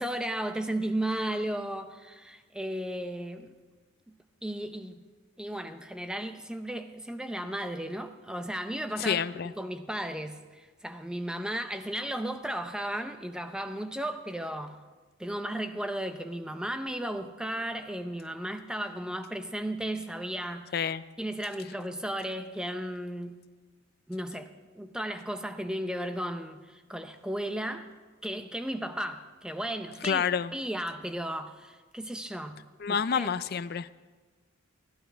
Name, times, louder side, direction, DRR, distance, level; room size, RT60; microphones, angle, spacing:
voice 1, 0.0-3.6 4.1-4.2 4.4-5.0 5.4-9.2 9.4-14.8 15.2-20.7 21.2-23.4 24.1-24.5 24.7-27.9 28.2-30.2 30.5-32.6 32.9-33.3, right 1 dB, 5° right, 8 dB, 0.6 m, -35 dB
voice 2, 9.0-9.5 20.7-21.0 30.0-30.5 32.8-33.9, left 7 dB, 50° left, 15 dB, 0.4 m, -28 dB
21.0 x 14.5 x 3.4 m, 1.4 s
head